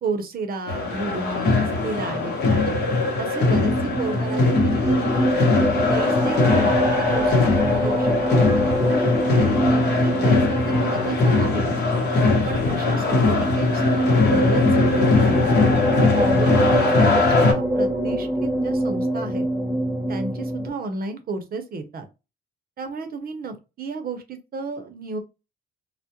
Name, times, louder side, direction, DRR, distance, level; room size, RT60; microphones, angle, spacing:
voice 1, 0.0-2.7 3.2-5.4 5.9-8.4 8.9-11.7 12.5-15.4 16.1-19.4 20.1-22.1 22.8-25.2, right 3 dB, 50° right, 8 dB, 0.6 m, -32 dB
sound 1, 0.7-17.5, left 3 dB, 55° left, 0.8 m, -21 dB
sound 2, 3.3-20.7, equal, 10° left, 0.9 m, -24 dB
2.2 x 2.0 x 2.8 m, 0.28 s
cardioid pair, 90°, 20 cm